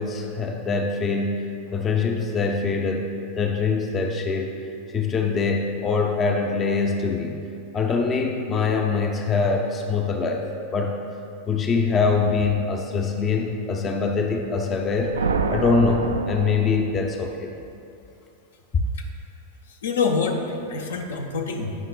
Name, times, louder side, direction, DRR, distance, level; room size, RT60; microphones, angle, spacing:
voice 1, 0.0-7.4 7.7-10.9 11.5-15.2 15.5-17.6 18.7-18.8, left 4 dB, 25° left, 3 dB, 0.6 m, -24 dB
sound 1, 14.7-17.3, right 4 dB, 70° right, 0.4 m, -28 dB
voice 2, 19.7-21.7, left 4 dB, 65° left, 3 dB, 0.8 m, -26 dB
17.0 x 5.8 x 2.3 m, 2.6 s
figure-of-eight pair, 90°, 0 cm